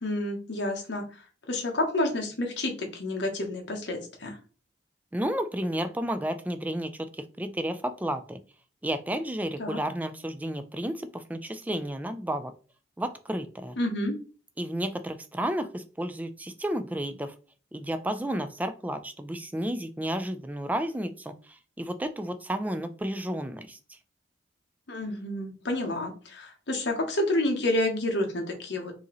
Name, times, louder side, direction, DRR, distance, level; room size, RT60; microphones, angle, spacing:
voice 1, 0.0-4.4 9.6-9.8 13.8-14.1 24.9-28.9, left 1 dB, 65° left, 2 dB, 1.1 m, -29 dB
voice 2, 5.1-6.9 7.4-8.4 8.8-12.5 13.0-13.8 14.6-17.3 17.7-23.8, right 1 dB, 10° right, 9 dB, 0.3 m, -32 dB
4.7 x 2.8 x 3.0 m, 0.37 s
head